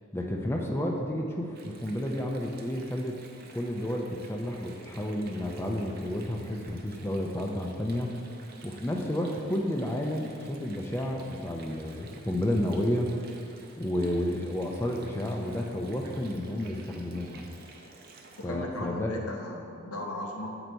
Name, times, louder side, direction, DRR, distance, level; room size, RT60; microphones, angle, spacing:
voice 1, 0.1-3.1 3.5-8.1 8.6-13.1 13.8-17.4 18.4-19.2, left 1 dB, 10° left, 1 dB, 0.4 m, -31 dB
Water, 1.5-18.5, right 3 dB, 45° right, 0.6 m, -52 dB
voice 2, 18.4-20.6, left 1 dB, 85° left, 1 dB, 0.9 m, -37 dB
7.5 x 4.0 x 4.5 m, 2.4 s
head